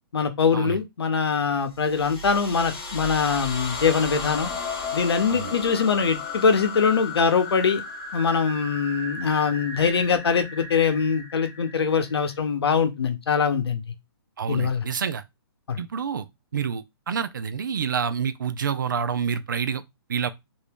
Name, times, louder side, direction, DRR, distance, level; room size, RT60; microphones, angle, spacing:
voice 1, 0.1-4.5 4.9-7.8 8.1-13.8 14.5-14.8 15.7-15.8, left 5 dB, 80° left, 0.8 m, -23 dB
sound 1, 1.7-12.3, left 4 dB, 15° left, 0.4 m, -35 dB
voice 2, 14.4-15.2 15.8-16.3 16.5-19.8 20.1-20.3, right 7 dB, 50° right, 0.4 m, -28 dB
2.9 x 2.7 x 3.4 m
hypercardioid pair, 180°, 13 cm